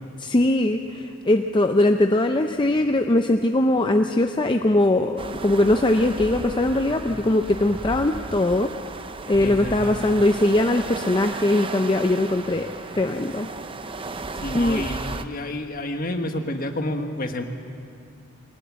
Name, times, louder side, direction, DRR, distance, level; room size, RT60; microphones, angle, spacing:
voice 1, 0.2-8.7 9.3-13.5 14.5-14.8, left 1 dB, 25° left, 5 dB, 0.5 m, -21 dB
sound 1, 5.2-15.2, right 3 dB, 25° right, 0.7 m, -35 dB
voice 2, 9.4-10.1 14.3-17.4, left 1 dB, 45° left, 5 dB, 1.5 m, -30 dB
22.0 x 19.0 x 7.5 m, 2.4 s
head